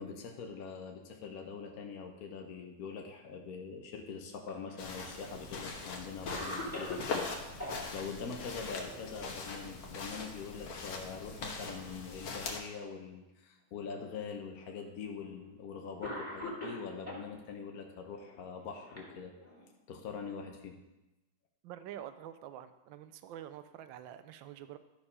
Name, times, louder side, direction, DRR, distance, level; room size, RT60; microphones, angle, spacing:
voice 1, 0.0-19.3 19.9-20.8, left 5 dB, 55° left, 2 dB, 1.1 m, -43 dB
Cough, 4.4-5.3 5.8-5.9 6.3-7.8 9.7-10.1 10.4-10.5 11.3-12.0 12.8-12.9 14.0-14.1 15.2-15.4 16.0-17.3 18.2-19.7, left 1 dB, 5° left, 2.4 m, -43 dB
sound 1, 4.8-12.6, left 4 dB, 85° left, 2.0 m, -42 dB
voice 2, 21.6-24.8, right 11 dB, 75° right, 11 dB, 1.3 m, -47 dB
12.0 x 4.8 x 5.4 m, 1.0 s
omnidirectional pair, 2.3 m